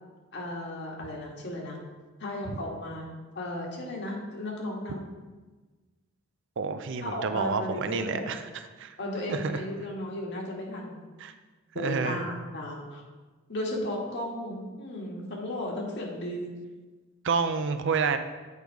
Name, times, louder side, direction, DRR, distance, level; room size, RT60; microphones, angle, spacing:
voice 1, 0.3-1.8 2.2-3.1 3.4-5.1 7.0-8.2 9.0-11.0 11.8-13.0 13.5-16.5, left 1 dB, 55° left, -1 dB, 1.7 m, -35 dB
voice 2, 6.6-8.4 8.8-8.9 9.3-9.6 11.2-11.3 11.8-12.3 17.2-18.2, right 5 dB, 60° right, 9 dB, 0.5 m, -29 dB
8.2 x 5.1 x 4.6 m, 1.3 s
head